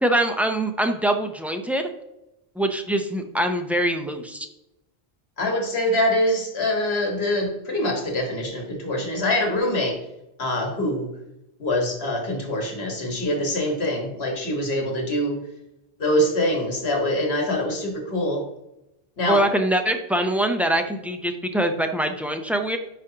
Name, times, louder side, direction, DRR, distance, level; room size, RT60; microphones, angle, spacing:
voice 1, 0.0-1.9 2.6-4.5 19.3-22.8, right 1 dB, ahead, 5 dB, 0.4 m, -23 dB
voice 2, 5.4-10.0 10.4-11.1 11.6-15.4 16.0-18.4 19.2-19.4, left 1 dB, 85° left, 1 dB, 1.7 m, -24 dB
9.8 x 5.1 x 2.9 m, 0.88 s
omnidirectional pair, 1.0 m